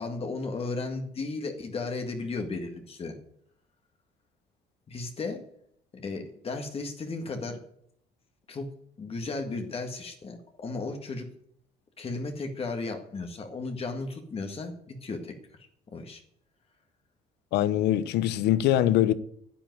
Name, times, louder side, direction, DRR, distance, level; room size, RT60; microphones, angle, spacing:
voice 1, 0.0-3.2 4.9-5.5 5.9-7.6 8.5-8.7 9.0-11.3 12.0-16.2, left 3 dB, 35° left, 1.9 m, -35 dB
voice 2, 17.5-19.1, left 12 dB, 80° left, 0.9 m, -23 dB
10.0 x 9.0 x 9.4 m
cardioid pair, 110°, 17 cm